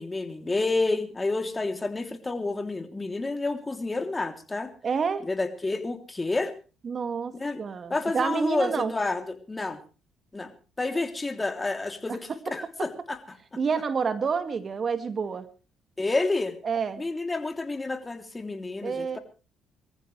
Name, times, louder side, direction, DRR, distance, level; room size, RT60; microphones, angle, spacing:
voice 1, 0.0-4.7 5.2-6.5 7.3-7.6 7.9-9.8 10.3-10.5 10.8-13.4 16.0-16.6 17.0-19.2, left 3 dB, 25° left, 6 dB, 3.2 m, -29 dB
voice 2, 4.8-5.2 6.8-8.9 13.6-15.5 16.6-17.0 18.8-19.2, right 5 dB, 45° right, 9 dB, 2.1 m, -28 dB
24.5 x 14.5 x 3.3 m, 0.35 s
supercardioid pair, 60°, 0 cm